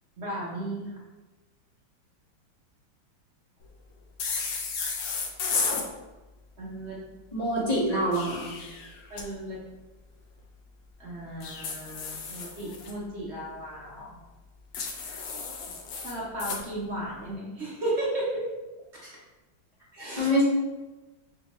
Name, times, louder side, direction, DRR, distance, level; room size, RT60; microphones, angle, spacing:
voice 1, 0.2-0.9 6.6-7.0 9.1-9.6 11.0-14.2 16.0-18.4 19.9-20.3, right 1 dB, 55° right, -5 dB, 0.7 m, -34 dB
sound 1, 4.2-5.9 7.9-9.3 11.4-12.9 14.7-16.6, left 5 dB, 70° left, 0.8 m, -33 dB
voice 2, 7.3-8.5 19.0-19.1 20.2-20.4, equal, 30° left, -8 dB, 0.8 m, -25 dB
5.3 x 2.7 x 2.9 m, 1.1 s
omnidirectional pair, 2.1 m